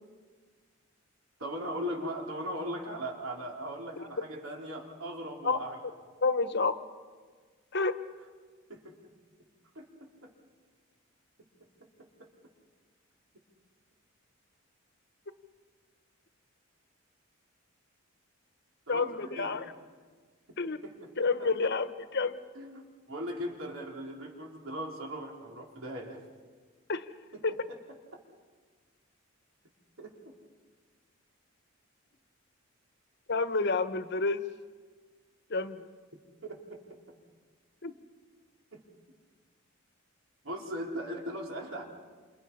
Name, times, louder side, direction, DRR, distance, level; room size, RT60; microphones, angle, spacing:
voice 1, 1.4-5.8 8.7-8.9 9.7-10.3 11.8-12.3 18.9-19.6 20.5-20.6 20.8-21.1 21.4-21.7 22.5-26.2 27.3-27.8 30.0-30.1 36.4-36.8 38.7-38.8 40.4-41.8, equal, 75° right, 0 dB, 4.3 m, -39 dB
voice 2, 6.2-6.8 7.7-8.0 18.9-19.6 20.6-20.8 21.2-21.9 22.1-22.4 26.9-27.0 27.4-27.5 33.3-34.4 35.5-35.9 37.8-37.9, left 3 dB, 55° left, 10 dB, 1.2 m, -29 dB
29.0 x 28.0 x 5.7 m, 1.5 s
head